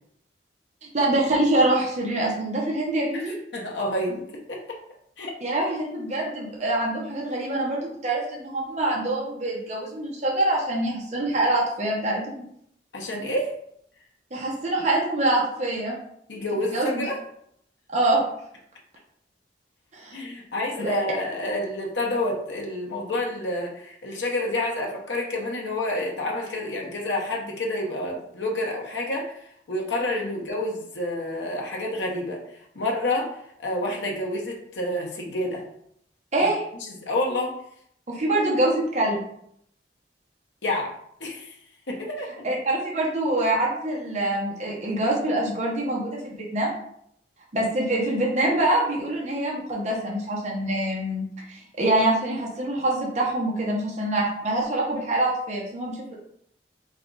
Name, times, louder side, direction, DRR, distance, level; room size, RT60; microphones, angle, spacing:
voice 1, 0.9-3.3 5.4-12.4 14.3-16.0 16.5-17.0 17.9-18.2 19.9-20.2 20.8-21.0 36.3-36.6 38.1-39.2 42.4-46.7 47.5-56.2, right 1 dB, 40° right, -3 dB, 0.8 m, -25 dB
voice 2, 3.1-4.8 5.2-5.3 12.9-13.6 16.3-17.2 20.1-29.4 29.7-32.4 32.7-33.3 33.6-35.6 37.0-37.5 40.6-40.9 41.2-41.5 41.9-42.3, left 1 dB, 80° left, -1 dB, 0.8 m, -28 dB
4.2 x 2.3 x 3.8 m, 0.70 s
head